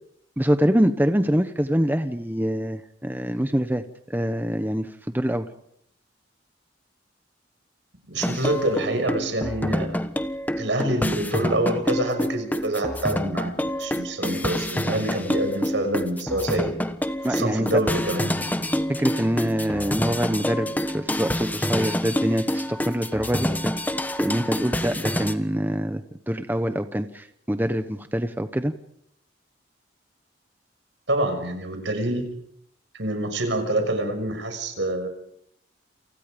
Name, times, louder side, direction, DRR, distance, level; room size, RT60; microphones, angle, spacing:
voice 1, 0.4-5.5 17.2-17.8 18.9-28.7, equal, 10° right, 9 dB, 1.0 m, -25 dB
voice 2, 8.1-10.0 10.6-16.7 17.3-18.6 31.1-32.2 33.0-35.1, right 1 dB, 70° right, 6 dB, 6.3 m, -26 dB
sound 1, 8.2-25.3, left 1 dB, 10° left, 1.3 m, -27 dB
29.5 x 28.5 x 5.3 m, 0.72 s
head